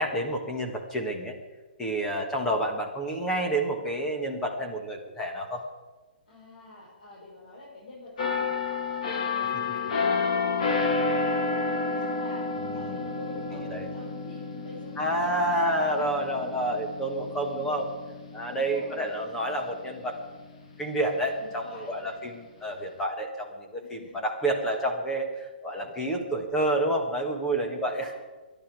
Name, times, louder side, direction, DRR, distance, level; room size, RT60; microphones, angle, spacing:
voice 1, 0.0-1.4 1.8-5.6 12.6-13.0 13.7-13.9 15.0-17.9 18.3-20.4 20.8-28.1, right 1 dB, 5° left, 3 dB, 1.3 m, -29 dB
voice 2, 6.3-15.5 15.9-16.6 17.4-17.8 18.4-19.1 21.4-22.1 23.8-24.2 27.4-28.2, left 2 dB, 65° left, -5 dB, 5.6 m, -47 dB
sound 1, 8.2-19.7 20.2-20.4, left 4 dB, 45° left, 2.1 m, -30 dB
24.0 x 11.0 x 4.7 m, 1.3 s
hypercardioid pair, 175°, 5 cm